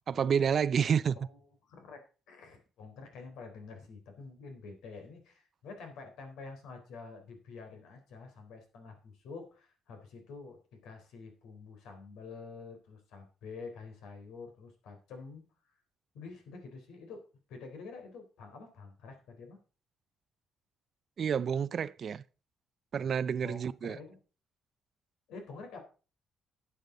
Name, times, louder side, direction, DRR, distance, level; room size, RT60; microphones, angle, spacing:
voice 1, 0.1-1.2 21.2-22.2 22.9-24.0, right 7 dB, 40° right, 0.5 m, -29 dB
voice 2, 1.2-2.0 2.3-15.8 16.1-17.2 17.5-19.6 23.4-24.2 25.3-25.8, left 4 dB, 85° left, 3.9 m, -48 dB
12.0 x 8.3 x 3.9 m
cardioid pair, 140°, 0 cm